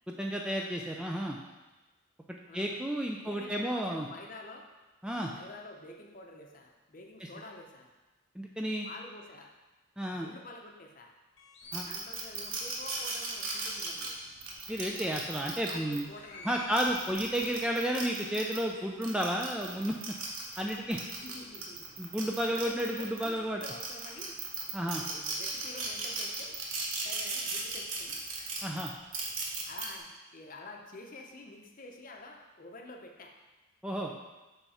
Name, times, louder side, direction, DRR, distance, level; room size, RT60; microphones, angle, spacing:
voice 1, 0.2-1.4 2.5-4.1 5.0-5.3 7.2-7.3 8.4-8.9 10.0-10.3 11.7-11.9 14.7-16.1 16.4-20.0 20.6-21.0 22.0-23.6 24.7-25.0 28.6-28.9 33.8-34.1, equal, 5° right, 0 dB, 0.3 m, -32 dB
voice 2, 3.2-4.7 5.3-7.9 8.8-9.5 10.1-11.1 11.8-14.2 15.7-16.7 21.2-21.8 22.5-24.3 24.9-26.6 27.0-28.2 29.7-33.3, left 2 dB, 40° left, 2 dB, 0.7 m, -48 dB
sound 1, 11.4-11.9 12.5-12.6 12.9-13.0 13.4-13.8 14.5-14.6 14.9-15.0 16.0-17.6, left 5 dB, 70° left, 1.0 m, -48 dB
sound 2, 11.7-16.0 16.6-18.6 19.0-23.3 23.6-29.9, right 4 dB, 85° right, 1.2 m, -37 dB
5.7 x 5.6 x 4.2 m, 1.1 s
head